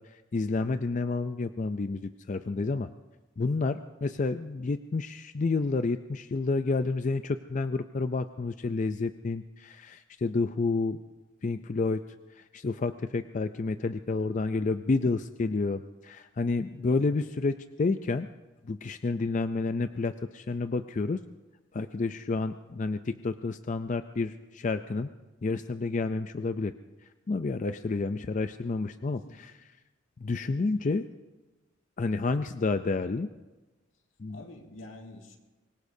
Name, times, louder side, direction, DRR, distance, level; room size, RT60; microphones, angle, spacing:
voice 1, 0.0-2.9 3.4-11.0 11.4-12.0 12.3-18.3 18.6-21.2 21.7-25.1 25.4-26.7 27.3-29.5 30.2-31.0 32.0-33.3 34.2-34.4, left 3 dB, 35° left, 10 dB, 0.4 m, -30 dB
voice 2, 29.0-29.4 30.6-30.9 34.3-35.4, left 1 dB, 80° left, 2 dB, 2.2 m, -48 dB
25.0 x 21.5 x 2.7 m, 1.2 s
head